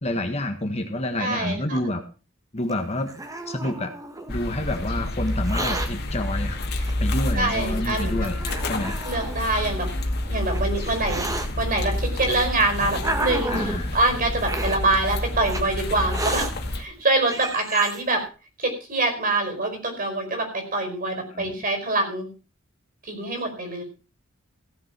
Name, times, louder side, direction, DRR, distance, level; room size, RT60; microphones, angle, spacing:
voice 1, 0.0-2.0 2.5-3.1 3.5-3.9 4.3-6.6 7.0-8.4 8.7-9.0 13.5-14.0 21.3-21.6, left 1 dB, 30° left, 6 dB, 1.5 m, -28 dB
voice 2, 1.2-1.8 7.3-8.3 9.0-10.0 10.3-11.3 11.6-16.5 16.7-18.2 18.6-22.3 23.0-23.8, right 2 dB, 45° right, 5 dB, 4.9 m, -25 dB
Hiss, 2.7-4.3 5.3-5.9 6.8-6.9 7.8-7.9 8.4-9.4 10.3-11.5 12.3-13.8 14.4-14.8 15.5-15.6 16.1-16.5 17.0-17.1 17.3-18.0, right 2 dB, 15° right, 1.7 m, -31 dB
sound 1, 4.3-16.8, left 1 dB, 50° left, 2.2 m, -28 dB
16.0 x 7.3 x 6.0 m, 0.34 s
head